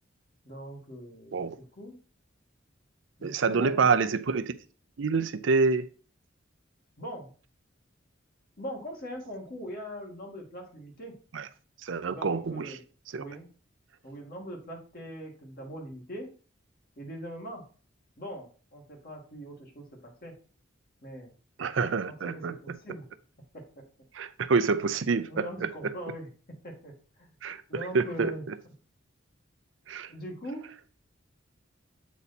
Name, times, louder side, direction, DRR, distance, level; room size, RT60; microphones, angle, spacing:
voice 1, 0.4-2.0 3.2-4.0 7.0-7.3 8.6-11.1 12.1-12.9 13.1-13.5 14.0-16.3 17.0-17.6 18.2-20.3 21.0-21.3 22.1-23.0 23.5-23.8 25.2-26.3 26.6-27.3 27.7-28.5 30.1-30.6, equal, 50° left, 2.2 m, -41 dB
voice 2, 3.2-4.5 5.0-5.9 11.3-11.4 11.8-12.7 13.1-13.2 21.6-22.5 24.2-25.7 27.4-28.3 29.9-30.1, right 4 dB, 70° right, 0.5 m, -27 dB
8.3 x 4.1 x 4.2 m
head